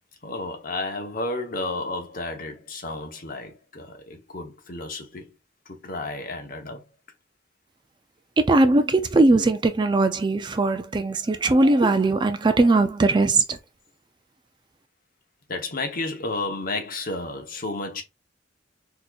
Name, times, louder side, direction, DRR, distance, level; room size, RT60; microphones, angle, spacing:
voice 1, 0.2-5.3 5.7-6.8 15.5-18.0, left 2 dB, 50° left, 0.9 m, -32 dB
voice 2, 8.4-13.6, right 2 dB, 25° right, 0.4 m, -20 dB
4.2 x 2.9 x 2.3 m
head